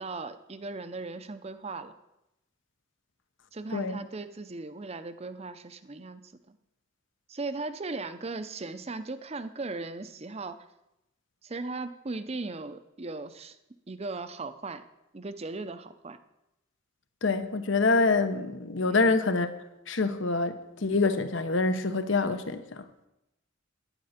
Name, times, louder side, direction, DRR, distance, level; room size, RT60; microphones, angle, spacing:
voice 1, 0.0-1.9 3.5-6.6 7.3-10.7 11.4-13.6 13.9-14.8 15.1-16.2 18.8-19.2, right 3 dB, 30° right, 0.6 m, -38 dB
voice 2, 17.2-19.5 19.9-22.8, left 3 dB, 65° left, 0.9 m, -26 dB
11.0 x 9.7 x 5.8 m
head